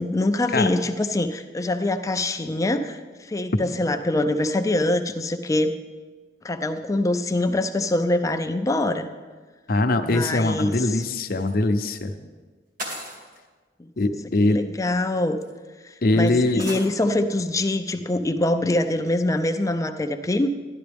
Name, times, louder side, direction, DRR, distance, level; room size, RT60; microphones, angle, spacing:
voice 1, 0.0-5.7 6.4-9.1 10.0-11.0 14.5-15.4 15.8-20.5, left 1 dB, 20° left, 8 dB, 0.4 m, -24 dB
voice 2, 9.7-12.1 14.0-14.6 16.0-16.6, left 2 dB, 55° left, 7 dB, 0.7 m, -22 dB
sound 1, 11.3-11.5 12.8-13.4 14.6-14.7 15.4-15.5 16.6-16.9, right 1 dB, 50° right, 2.3 m, -35 dB
11.5 x 11.5 x 3.5 m, 1.4 s
head